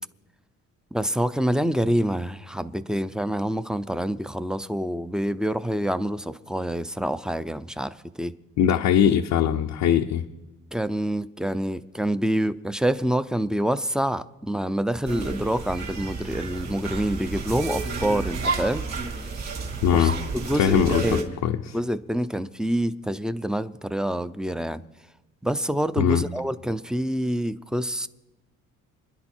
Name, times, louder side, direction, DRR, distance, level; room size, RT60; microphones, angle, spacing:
voice 1, 0.9-8.3 10.7-18.9 19.9-21.4 21.7-24.8 25.4-28.1, right 1 dB, ahead, 0.5 m, -27 dB
voice 2, 8.6-10.2 19.8-20.1 20.5-21.8 26.0-26.2, left 9 dB, 85° left, 0.8 m, -21 dB
sound 1, 15.1-21.2, right 3 dB, 55° right, 4.1 m, -31 dB
27.5 x 10.5 x 4.4 m
cardioid pair, 95°, 32 cm